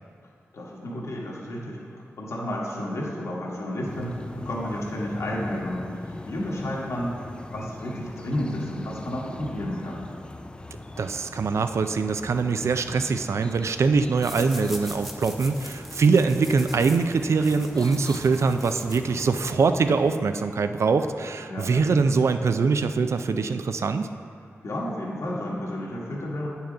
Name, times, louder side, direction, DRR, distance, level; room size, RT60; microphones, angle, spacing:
voice 1, 0.5-1.8 2.2-5.9 6.2-7.1 7.5-10.1 21.5-21.8 24.6-26.5, left 1 dB, 70° left, -3 dB, 1.3 m, -31 dB
sound 1, 3.8-20.1, left 2 dB, 20° left, 0.4 m, -41 dB
voice 2, 11.0-24.1, right 4 dB, 65° right, 9 dB, 0.4 m, -23 dB
sound 2, 14.2-19.5, equal, 5° right, 0.9 m, -42 dB
8.8 x 5.6 x 3.8 m, 2.3 s
cardioid pair, 65°, 5 cm